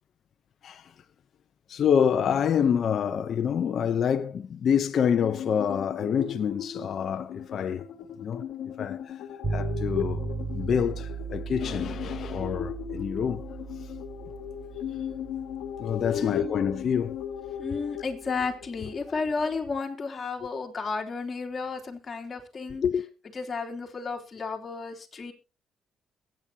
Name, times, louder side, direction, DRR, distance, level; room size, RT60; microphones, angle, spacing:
voice 1, 1.7-7.8 8.2-8.4 8.8-9.2 9.5-13.6 13.8-13.9 15.8-17.2 20.4-20.5 22.8-23.1, left 8 dB, 60° left, 0.8 m, -27 dB
sound 1, 5.2-19.6, left 9 dB, 85° left, 1.4 m, -37 dB
sound 2, 9.4-19.3, right 5 dB, 35° right, 3.0 m, -37 dB
voice 2, 16.1-16.6 17.6-22.8 23.3-25.3, left 4 dB, 35° left, 3.0 m, -33 dB
22.5 x 9.0 x 2.9 m
cardioid pair, 90°, 0 cm